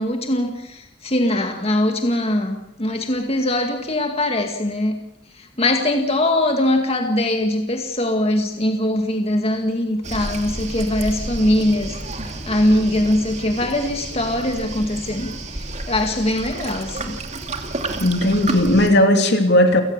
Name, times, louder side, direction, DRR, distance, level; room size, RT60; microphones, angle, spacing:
voice 1, 0.0-5.0 5.3-17.2, left 1 dB, 30° left, 4 dB, 2.1 m, -22 dB
Waves surf, 10.0-18.9, right 2 dB, 35° right, 2.6 m, -31 dB
voice 2, 18.0-19.8, left 1 dB, 60° left, 5 dB, 2.9 m, -16 dB
29.0 x 19.0 x 7.4 m, 0.89 s
head